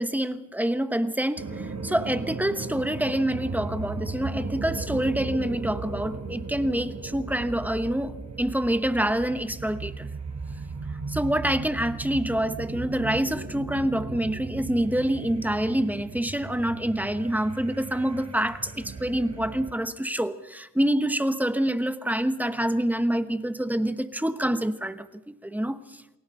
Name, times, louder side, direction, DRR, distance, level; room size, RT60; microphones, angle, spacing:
voice 1, 0.0-10.1 11.1-26.0, right 1 dB, 5° right, 1.0 m, -27 dB
sound 1, 1.4-19.7, right 4 dB, 65° right, 3.9 m, -36 dB
29.0 x 20.0 x 5.6 m
wide cardioid pair, 125°, 30 cm